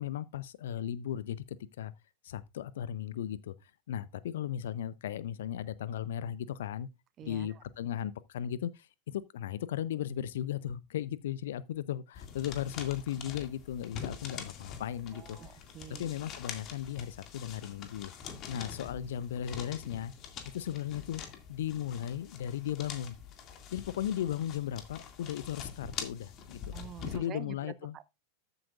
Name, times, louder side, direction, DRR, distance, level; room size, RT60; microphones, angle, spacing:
voice 1, 0.0-1.9 2.2-6.9 7.2-15.4 16.0-18.1 18.5-20.1 20.5-21.2 21.5-23.2 23.7-26.6 27.0-27.9, left 10 dB, 60° left, 0.6 m, -36 dB
voice 2, 7.2-7.6 15.1-16.1 26.7-27.6 27.9-28.0, right 10 dB, 30° right, 0.8 m, -46 dB
sound 1, 12.1-27.2, left 7 dB, 35° left, 2.2 m, -45 dB
13.5 x 8.1 x 2.4 m
figure-of-eight pair, 90°, 0 cm